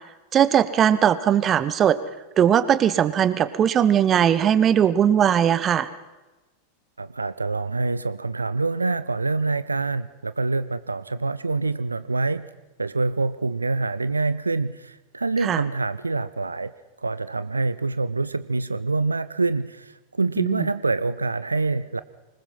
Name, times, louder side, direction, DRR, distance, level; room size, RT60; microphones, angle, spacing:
voice 1, 0.3-2.0 2.4-5.9 15.4-15.6 20.4-20.6, right 9 dB, 25° right, 15 dB, 1.1 m, -19 dB
voice 2, 7.0-12.5 12.8-16.7 17.0-22.0, right 3 dB, 80° right, 15 dB, 0.6 m, -26 dB
24.5 x 20.5 x 5.7 m, 1.1 s
figure-of-eight pair, 90°, 0 cm